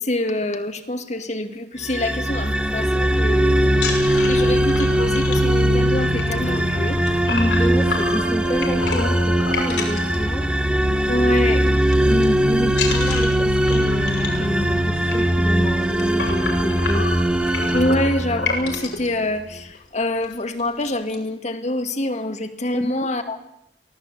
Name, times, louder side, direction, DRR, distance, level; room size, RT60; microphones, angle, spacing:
voice 1, 0.1-3.5 4.3-7.0 11.1-11.6 17.7-19.4 19.9-23.4, left 1 dB, 40° left, 7 dB, 2.1 m, -25 dB
sound 1, 1.8-19.0, right 1 dB, 5° right, 1.3 m, -20 dB
sound 2, 3.7-10.8 11.1-11.4 11.7-12.2 12.7-19.1 19.7-19.8 20.2-20.3 20.6-21.2, left 3 dB, 85° left, 5.8 m, -30 dB
voice 2, 7.3-10.5 12.0-17.0 22.7-23.3, equal, 15° left, 5 dB, 1.4 m, -28 dB
23.5 x 17.5 x 8.4 m, 0.79 s
head